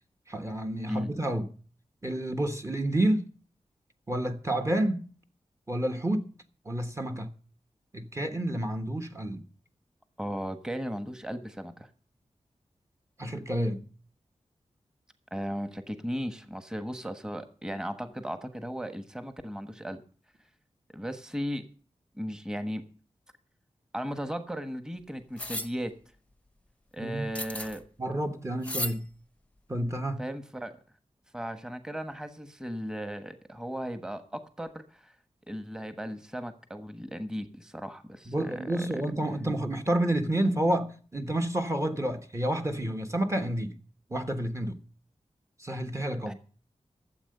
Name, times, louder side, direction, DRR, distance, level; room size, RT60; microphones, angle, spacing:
voice 1, 0.3-1.5 2.0-3.3 4.1-5.1 5.7-6.3 6.6-7.3 7.9-9.4 13.2-13.8 27.0-27.3 28.0-29.0 29.7-30.2 38.3-43.7 44.1-44.8 45.6-46.3, right 1 dB, 25° right, 1.3 m, -29 dB
voice 2, 10.2-11.9 15.3-20.0 20.9-21.7 22.2-22.8 23.9-25.9 26.9-27.8 30.2-30.8 31.3-35.1 35.5-39.0 46.3-46.4, equal, 5° right, 1.3 m, -36 dB
sound 1, 25.4-25.7 27.3-27.8 28.6-29.0, left 1 dB, 10° left, 0.8 m, -34 dB
13.5 x 7.7 x 6.6 m
wide cardioid pair, 85°, 12 cm